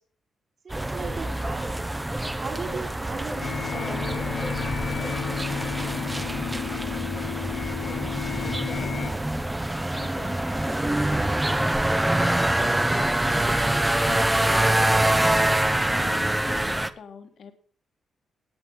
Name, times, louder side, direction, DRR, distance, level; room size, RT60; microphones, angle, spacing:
voice 1, 0.6-1.7 2.4-4.9, right 4 dB, 50° right, 4 dB, 4.0 m, -38 dB
sound 1, 0.7-16.9, right 1 dB, 10° right, 0.8 m, -25 dB
sound 2, 3.4-9.1, left 8 dB, 90° left, 1.2 m, -32 dB
voice 2, 7.8-9.3 9.9-11.3 11.9-13.7 14.0-15.1 15.9-17.5, left 6 dB, 60° left, 6 dB, 1.7 m, -42 dB
18.5 x 8.1 x 5.6 m, 0.42 s
cardioid pair, 120°, 0 cm